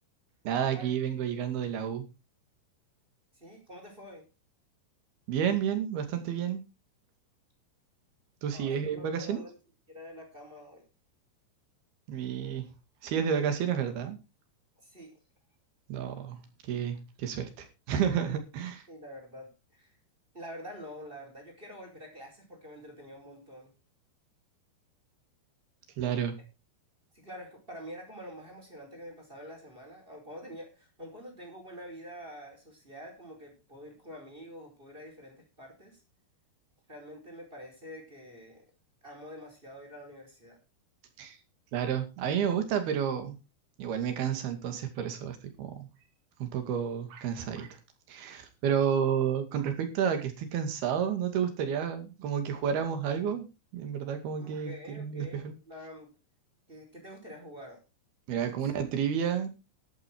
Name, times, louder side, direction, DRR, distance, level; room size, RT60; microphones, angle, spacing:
voice 1, 0.5-2.0 5.3-6.6 8.4-9.4 12.1-12.7 13.0-14.2 15.9-18.8 26.0-26.4 41.2-41.4 41.7-43.3 43.8-45.9 46.4-47.8 48.1-53.5 53.7-55.6 58.3-59.5, right 8 dB, 65° right, 7 dB, 4.0 m, -31 dB
voice 2, 3.3-4.3 8.5-9.6 9.9-10.9 14.8-15.2 18.9-20.0 20.3-23.7 27.1-36.0 36.9-38.7 39.0-40.6 54.4-56.1 56.7-57.8 58.5-58.6, equal, 10° right, 2 dB, 4.8 m, -47 dB
12.0 x 12.0 x 4.6 m, 0.29 s
omnidirectional pair, 5.0 m